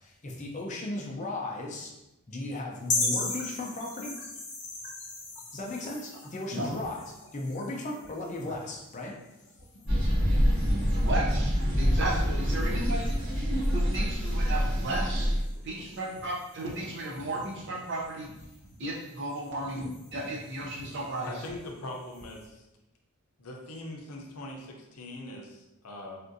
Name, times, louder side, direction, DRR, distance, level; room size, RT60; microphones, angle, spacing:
voice 1, 0.2-1.9 2.3-4.1 5.5-9.2, left 2 dB, 35° left, -1 dB, 0.5 m, -36 dB
sound 1, 2.8-22.5, left 2 dB, 65° left, 1.0 m, -40 dB
sound 2, 9.9-15.4, equal, 80° right, 1.5 m, -26 dB
voice 2, 11.0-13.1 13.7-15.3 15.6-18.3 18.8-21.3, right 2 dB, 50° right, -2 dB, 0.6 m, -34 dB
voice 3, 21.3-22.7 23.4-26.2, left 1 dB, 80° left, 1 dB, 0.6 m, -41 dB
3.5 x 2.5 x 2.6 m, 0.94 s
head